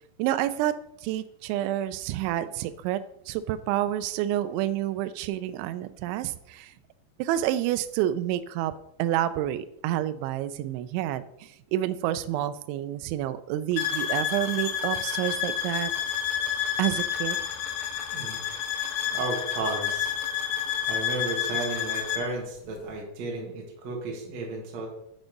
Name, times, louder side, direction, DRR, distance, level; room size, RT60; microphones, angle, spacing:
voice 1, 0.2-3.0 3.3-6.7 7.2-8.7 9.0-15.9 16.8-17.4, right 12 dB, 85° right, 12 dB, 2.6 m, -29 dB
sound 1, 13.8-22.3, left 9 dB, 85° left, 3.5 m, -29 dB
voice 2, 18.1-18.6 19.1-20.1 20.8-24.9, right 3 dB, 60° right, -2 dB, 1.9 m, -33 dB
8.7 x 6.2 x 5.2 m, 0.77 s
omnidirectional pair, 5.9 m